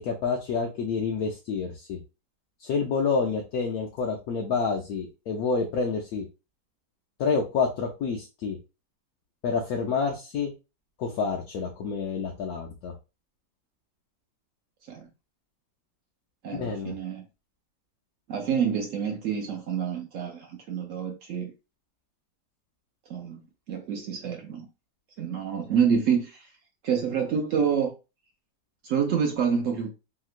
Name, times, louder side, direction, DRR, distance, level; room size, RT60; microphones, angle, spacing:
voice 1, 0.0-2.0 2.6-6.2 7.2-8.6 9.4-10.5 11.0-12.9 16.5-16.9, left 5 dB, 70° left, 1.0 m, -28 dB
voice 2, 16.4-17.2 18.3-21.5 23.1-23.4 23.7-24.7 25.2-26.5 26.8-27.9 28.8-29.9, right 7 dB, 70° right, 0.7 m, -27 dB
2.9 x 2.9 x 2.4 m
omnidirectional pair, 1.8 m